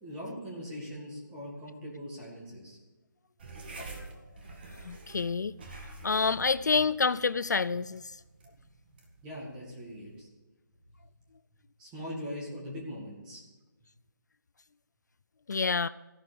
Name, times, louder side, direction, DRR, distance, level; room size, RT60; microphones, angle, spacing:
voice 1, 0.0-2.8 9.2-10.3 11.8-13.4, equal, 10° right, 2.0 m, -41 dB
sound 1, 3.4-10.3, right 2 dB, 30° right, 1.8 m, -48 dB
voice 2, 4.9-5.5 6.0-8.0 15.5-15.9, left 5 dB, 55° left, 0.3 m, -27 dB
15.0 x 11.5 x 5.2 m
hypercardioid pair, 170°, 11 cm